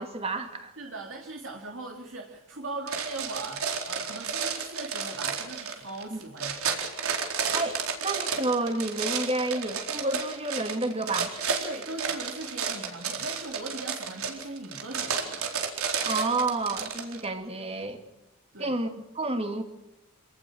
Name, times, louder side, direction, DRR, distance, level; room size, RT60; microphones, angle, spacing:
voice 1, 0.0-0.7 6.1-6.2 7.5-11.3 16.0-18.0 18.6-18.9 19.1-19.6, right 2 dB, 25° right, 6 dB, 2.4 m, -30 dB
voice 2, 0.8-6.9 11.6-15.5 18.5-18.8, right 2 dB, 60° right, 1 dB, 2.9 m, -39 dB
sound 1, 2.9-17.2, right 6 dB, 75° right, 4.2 m, -32 dB
27.5 x 18.5 x 6.4 m, 0.91 s
head